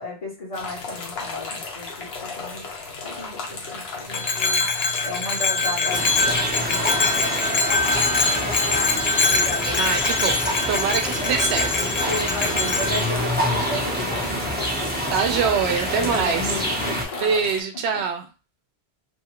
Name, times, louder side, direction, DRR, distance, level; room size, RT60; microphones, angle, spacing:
voice 1, 0.0-2.7 3.0-4.7 5.0-10.0 11.0-11.6 12.1-15.1 15.9-17.5 17.9-18.0, left 2 dB, 40° left, -5 dB, 0.8 m, -35 dB
sound 1, 0.5-17.6, left 4 dB, 70° left, 1.0 m, -35 dB
Bell, 4.1-13.1, left 4 dB, 55° left, 0.4 m, -24 dB
sound 2, 5.9-17.1, equal, 10° right, 0.5 m, -27 dB
voice 2, 9.8-11.9 12.5-13.1 15.1-16.6 17.2-18.2, right 6 dB, 80° right, 5 dB, 0.8 m, -25 dB
2.7 x 2.4 x 2.9 m, 0.29 s
omnidirectional pair, 1.1 m